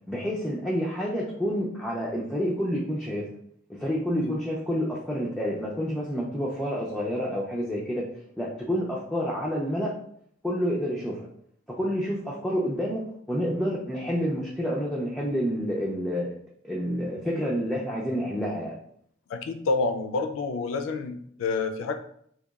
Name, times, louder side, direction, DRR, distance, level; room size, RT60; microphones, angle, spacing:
voice 1, 0.1-3.3 3.8-8.0 8.4-9.9 10.4-11.3 11.8-16.3 16.6-18.8, equal, ahead, -5 dB, 0.3 m, -28 dB
voice 2, 19.3-21.9, left 3 dB, 85° left, 6 dB, 0.3 m, -28 dB
2.8 x 2.2 x 2.3 m, 0.66 s
head